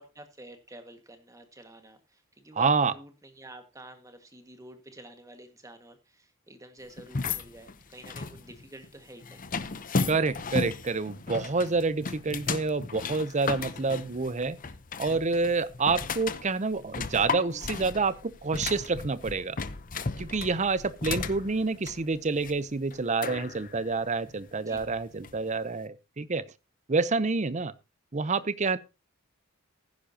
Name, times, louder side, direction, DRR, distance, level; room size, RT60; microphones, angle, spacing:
voice 1, 0.0-9.4 21.0-21.2 24.6-24.8, right 1 dB, 15° right, 1.8 m, -49 dB
voice 2, 2.6-2.9 10.1-14.6 15.0-19.6 20.2-26.4 26.9-27.7 28.1-28.8, right 4 dB, 35° right, 0.7 m, -28 dB
sound 1, 7.0-25.5, left 4 dB, 40° left, 0.8 m, -35 dB
16.0 x 10.0 x 2.9 m
head